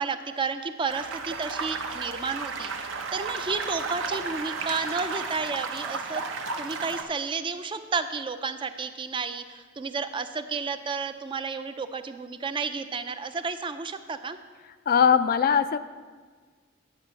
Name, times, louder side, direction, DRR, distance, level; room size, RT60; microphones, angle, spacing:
voice 1, 0.0-6.2 6.6-14.4, right 4 dB, 25° right, 10 dB, 0.4 m, -32 dB
sound 1, 0.9-7.0, right 4 dB, 75° right, 0.8 m, -33 dB
voice 2, 14.9-15.8, left 7 dB, 45° left, 12 dB, 0.3 m, -20 dB
9.5 x 5.4 x 6.9 m, 1.5 s
head